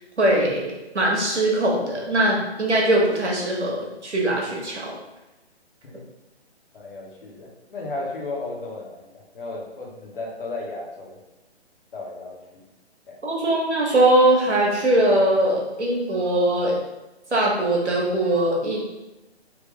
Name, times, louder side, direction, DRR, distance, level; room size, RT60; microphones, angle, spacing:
voice 1, 0.2-4.9 13.2-16.8 17.3-18.8, right 1 dB, 90° right, -3 dB, 1.4 m, -21 dB
voice 2, 6.7-11.2 11.9-12.4 13.1-13.2, left 2 dB, 55° left, -2 dB, 1.1 m, -34 dB
3.6 x 2.9 x 3.3 m, 1.0 s
figure-of-eight pair, 145°, 33 cm